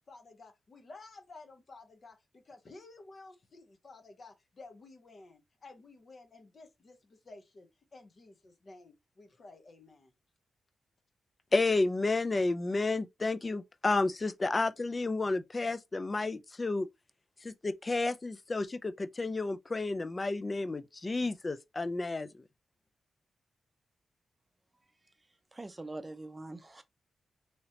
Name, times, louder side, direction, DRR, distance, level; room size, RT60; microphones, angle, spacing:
voice 1, 0.1-10.1, left 3 dB, 55° left, 0.9 m, -53 dB
voice 2, 11.5-16.9 17.4-22.4, left 3 dB, 35° left, 0.4 m, -31 dB
voice 3, 25.5-26.8, right 2 dB, 25° right, 0.6 m, -43 dB
3.1 x 2.8 x 2.8 m
cardioid pair, 55°, 0 cm